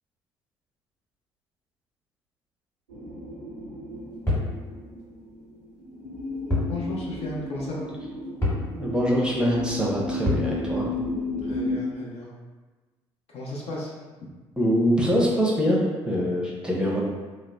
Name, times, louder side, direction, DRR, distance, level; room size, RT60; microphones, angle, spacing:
sound 1, 2.9-11.8, left 2 dB, 85° right, 0.5 m, -33 dB
sound 2, 4.3-4.6 6.5-6.8 7.1-7.2 8.4-8.7 10.2-10.5, left 1 dB, 15° left, 1.3 m, -25 dB
voice 1, 6.7-7.9 11.4-12.3 13.3-13.9, left 1 dB, 45° left, -4 dB, 0.6 m, -34 dB
voice 2, 8.7-10.8 14.6-15.8 16.0-17.0, equal, 5° right, -5 dB, 0.7 m, -24 dB
2.8 x 2.0 x 2.2 m, 1.3 s
figure-of-eight pair, 50°, 15 cm